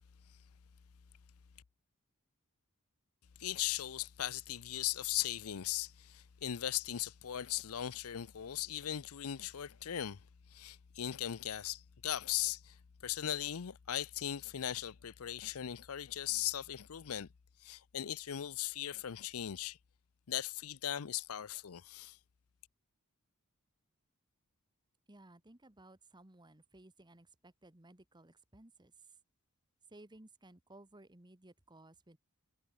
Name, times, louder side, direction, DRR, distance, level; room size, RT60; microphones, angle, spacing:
voice 1, 3.4-10.2 10.5-12.8 13.0-17.3 17.6-19.8 20.3-22.2, left 11 dB, 70° left, 0.6 m, -38 dB
voice 2, 25.1-29.2 29.9-32.2, right 2 dB, 20° right, 1.5 m, -58 dB
head